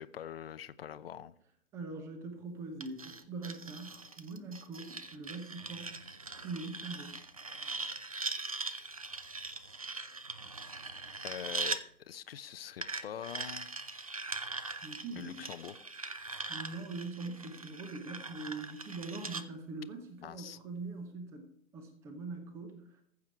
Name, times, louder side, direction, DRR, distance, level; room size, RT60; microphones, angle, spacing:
voice 1, 0.0-1.3 11.2-13.7 15.2-15.9 20.2-20.6, left 9 dB, 45° left, 15 dB, 0.7 m, -44 dB
voice 2, 1.7-6.0 6.4-7.2 14.8-15.4 16.5-21.5 21.7-22.8, right 3 dB, 5° right, 8 dB, 0.7 m, -42 dB
sound 1, 2.8-11.8 12.8-19.4, right 3 dB, 30° right, 0.4 m, -41 dB
14.5 x 7.2 x 4.6 m, 0.69 s
hypercardioid pair, 150°, 41 cm